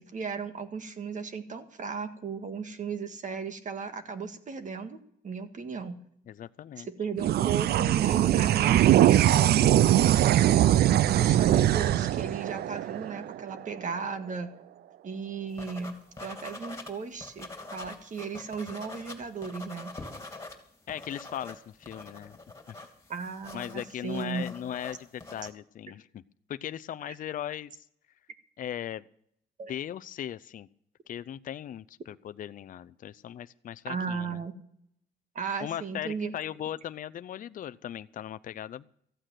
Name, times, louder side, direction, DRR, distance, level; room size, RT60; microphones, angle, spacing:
voice 1, 0.0-6.0 6.8-10.6 11.2-14.5 15.0-19.9 23.1-24.5 27.1-27.2 29.6-29.7 33.9-34.5 35.3-36.3, right 5 dB, 45° right, 8 dB, 1.7 m, -36 dB
voice 2, 6.3-6.9 20.9-22.4 22.7-22.8 23.5-26.2 26.5-27.9 28.6-29.1 29.7-30.7 31.1-34.4 35.6-38.8, left 10 dB, 50° left, 14 dB, 0.5 m, -38 dB
sound 1, 7.2-13.9, right 12 dB, 65° right, 0.5 m, -22 dB
sound 2, 15.6-16.9 17.2-20.5 20.8-25.5, left 2 dB, 15° left, 3.0 m, -44 dB
14.5 x 8.9 x 7.6 m, 0.69 s
cardioid pair, 100°, 18 cm